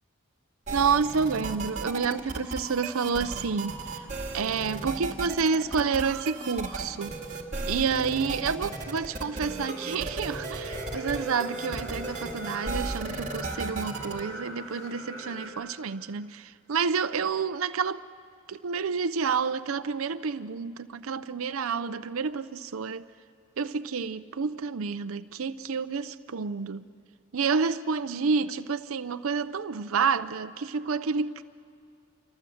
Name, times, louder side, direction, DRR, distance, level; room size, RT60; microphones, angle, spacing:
sound 1, 0.7-14.2, right 3 dB, 35° right, 2.2 m, -35 dB
voice 1, 0.7-4.1 4.3-7.1 7.7-18.0 18.5-23.1 23.6-26.8 27.3-31.4, right 5 dB, 80° right, 0.6 m, -29 dB
sound 2, 8.3-15.5, right 1 dB, 15° left, 4.9 m, -41 dB
26.5 x 24.0 x 7.8 m
head